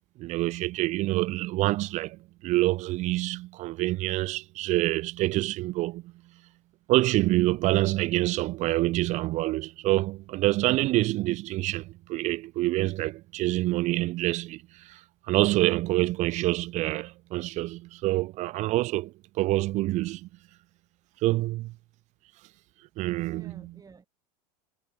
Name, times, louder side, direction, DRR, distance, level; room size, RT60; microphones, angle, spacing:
voice 1, 0.2-6.1 6.9-15.0 15.3-20.3 21.2-21.7 23.0-23.5, right 18 dB, 35° right, 0.4 m, -26 dB
voice 2, 22.9-24.1, right 5 dB, 15° right, 6.3 m, -53 dB
supercardioid pair, 115°, 21 cm